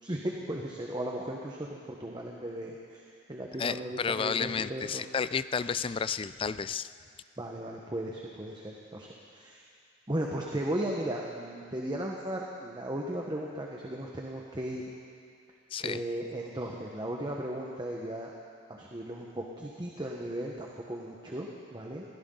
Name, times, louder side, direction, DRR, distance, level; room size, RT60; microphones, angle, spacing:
voice 1, 0.0-3.0 3.3-5.0 7.4-9.6 10.1-14.8 15.8-18.3 18.7-22.0, right 1 dB, 25° right, -2 dB, 1.2 m, -36 dB
voice 2, 3.6-6.9 15.7-16.0, left 6 dB, 25° left, 15 dB, 0.3 m, -31 dB
21.5 x 16.5 x 3.9 m, 2.3 s
head